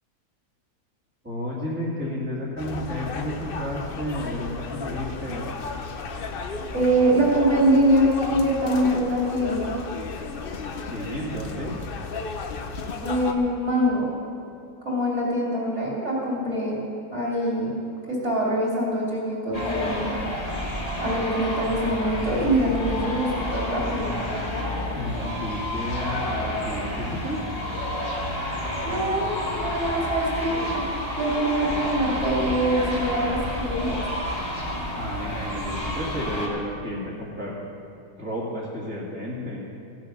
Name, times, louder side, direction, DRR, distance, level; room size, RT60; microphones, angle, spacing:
voice 1, 1.2-5.5 10.8-11.7 24.9-27.4 35.0-37.5 38.2-39.6, equal, 5° right, -6 dB, 1.8 m, -32 dB
sound 1, 2.6-13.3, left 4 dB, 55° left, 0.6 m, -34 dB
voice 2, 6.7-9.7 13.0-14.1 14.8-16.8 17.1-17.7 18.1-20.1 21.0-24.1 28.8-30.9 31.2-34.0, right 1 dB, 40° right, -4 dB, 3.4 m, -24 dB
sound 2, 19.5-36.5, left 1 dB, 20° left, 1.8 m, -30 dB
16.0 x 7.5 x 6.5 m, 2.5 s
omnidirectional pair, 1.8 m